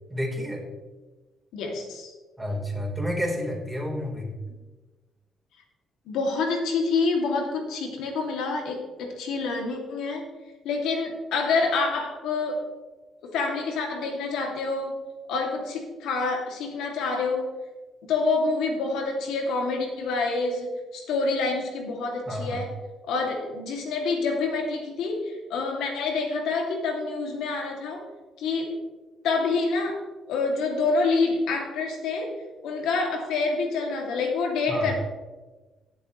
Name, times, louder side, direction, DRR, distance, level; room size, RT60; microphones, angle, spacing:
voice 1, 0.1-0.7 2.4-4.6 22.3-22.7 34.7-34.9, equal, 5° right, -2 dB, 3.8 m, -30 dB
voice 2, 1.5-2.1 6.1-10.2 10.6-12.7 13.2-15.0 15.3-17.5 18.1-22.7 23.1-28.0 28.4-28.7 29.2-30.0 30.3-32.3 32.6-34.9, left 3 dB, 90° left, 1 dB, 2.4 m, -27 dB
17.5 x 7.8 x 3.2 m, 1.2 s
cardioid pair, 90°, 0 cm